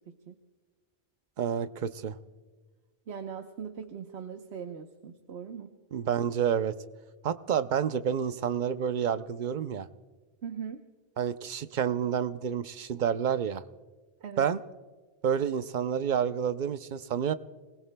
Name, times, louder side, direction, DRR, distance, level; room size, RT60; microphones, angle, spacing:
voice 1, 1.4-2.2 5.9-6.7 7.2-9.9 11.2-13.6 14.4-14.6 15.2-17.3, right 8 dB, 55° right, 12 dB, 0.7 m, -29 dB
voice 2, 3.1-5.7 10.4-10.8 14.2-14.5, right 7 dB, 80° right, 5 dB, 1.2 m, -40 dB
29.5 x 20.0 x 2.2 m, 1.4 s
omnidirectional pair, 1.1 m